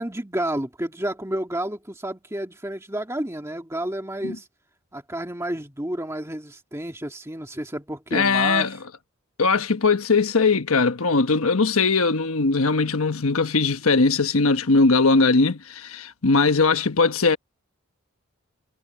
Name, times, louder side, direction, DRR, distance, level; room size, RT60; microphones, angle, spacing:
voice 1, 0.0-4.5 4.9-8.8, right 1 dB, 15° right, 2.0 m, -30 dB
voice 2, 8.1-8.8 9.4-17.4, left 4 dB, 80° left, 1.2 m, -20 dB
head